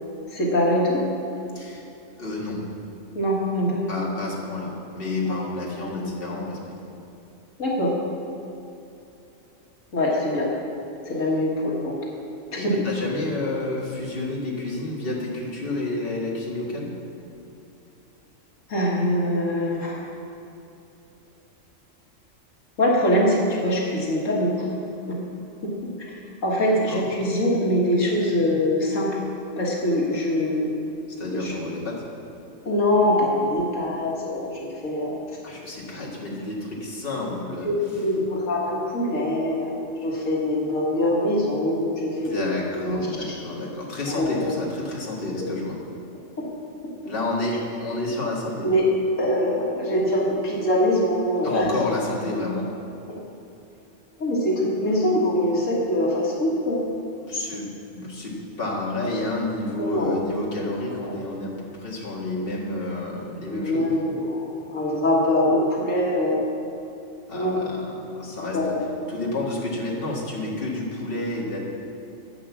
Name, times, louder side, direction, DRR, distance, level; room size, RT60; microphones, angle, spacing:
voice 1, 0.3-1.0 3.1-3.8 7.6-8.0 9.9-10.5 11.1-12.0 12.5-12.9 18.7-20.0 22.8-24.8 25.1-25.2 25.6-25.7 26.4-29.2 29.6-30.7 31.3-31.6 32.7-35.2 37.6-39.7 40.0-42.4 42.8-43.4 44.1-44.5 46.4-46.5 48.6-48.9 49.2-51.7 53.1-53.2 54.2-56.9 59.8-60.1 61.0-61.2 63.5-66.4 67.3-67.6 68.2-68.9, left 1 dB, 80° left, -3 dB, 2.0 m, -23 dB
voice 2, 2.2-2.6 3.6-6.7 12.6-16.9 26.6-27.1 31.2-32.0 35.4-38.0 42.1-45.8 47.0-48.7 51.4-52.7 57.2-63.8 67.3-67.8 68.1-68.8 69.1-71.6, left 2 dB, 45° left, -4 dB, 2.1 m, -30 dB
11.0 x 8.4 x 7.0 m, 2.8 s
omnidirectional pair, 1.3 m